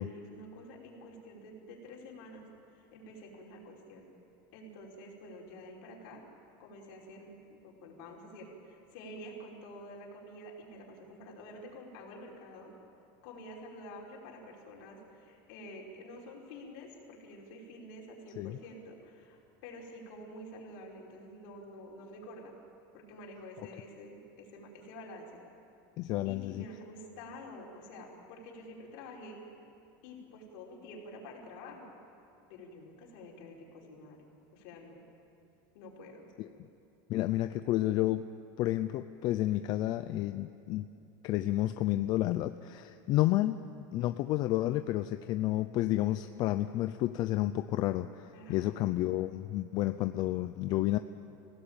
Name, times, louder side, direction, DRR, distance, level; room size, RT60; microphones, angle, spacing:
voice 1, 0.0-4.1 4.5-6.2 6.6-12.7 13.2-22.5 22.9-25.4 26.3-29.4 30.0-31.9 32.5-34.2 34.5-35.0 35.7-36.3 48.3-49.0, left 1 dB, 60° left, -2 dB, 5.3 m, -49 dB
voice 2, 26.0-26.6 36.4-36.5 37.1-38.2 38.6-40.9 41.2-51.0, left 15 dB, 40° left, 10 dB, 0.5 m, -31 dB
27.0 x 17.5 x 9.0 m, 2.7 s
cardioid pair, 175°, 12 cm